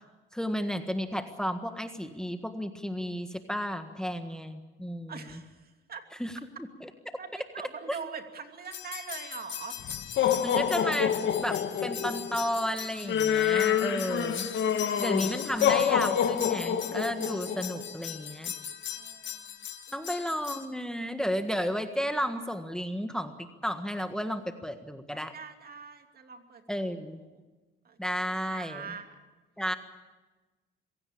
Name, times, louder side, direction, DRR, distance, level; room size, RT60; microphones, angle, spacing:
voice 1, 0.3-5.2 6.2-6.3 6.8-6.9 10.4-11.1 11.4-14.5 15.0-18.5 19.9-25.3 26.7-27.2 28.0-29.0 29.6-29.7, equal, 5° left, 7 dB, 1.6 m, -33 dB
voice 2, 5.1-6.0 7.2-9.8 14.6-15.0 18.9-19.5 19.9-20.0 25.1-27.0 27.3-27.4 27.8-28.0 28.5-29.2, right 6 dB, 50° right, 5 dB, 2.8 m, -43 dB
sound 1, 8.7-20.6, left 9 dB, 70° left, 1.7 m, -29 dB
25.0 x 16.5 x 8.7 m, 1.2 s
cardioid pair, 90°, 20 cm